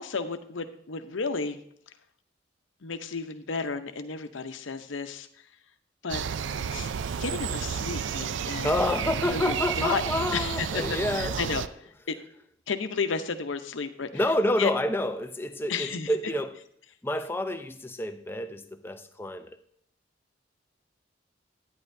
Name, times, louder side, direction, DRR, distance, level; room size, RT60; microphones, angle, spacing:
voice 1, 0.0-1.6 2.8-5.5 6.0-6.2 6.7-6.9 7.2-8.8 9.2-10.0 10.3-12.2 12.7-14.1 14.6-14.7 15.7-16.1, left 4 dB, 85° left, 0.8 m, -32 dB
sound 1, 6.1-11.7, right 7 dB, 70° right, 0.4 m, -31 dB
voice 2, 8.6-11.3 14.1-16.6 17.0-19.6, left 1 dB, 10° left, 0.5 m, -28 dB
11.0 x 9.5 x 2.7 m
head